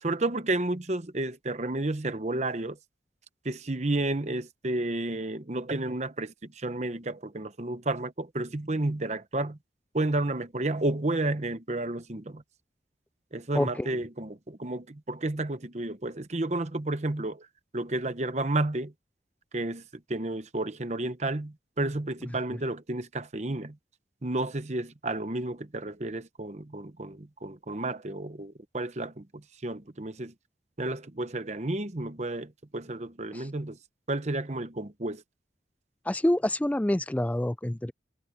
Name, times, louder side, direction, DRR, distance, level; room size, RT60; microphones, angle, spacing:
voice 1, 0.0-2.8 3.4-9.6 9.9-12.4 13.3-17.5 17.7-18.9 19.5-19.8 20.1-23.8 24.2-30.3 30.8-33.8 34.1-35.2, right 2 dB, 40° right, 0.9 m, -31 dB
voice 2, 13.5-13.9 33.3-33.5 36.1-37.9, left 1 dB, 10° left, 0.3 m, -27 dB
head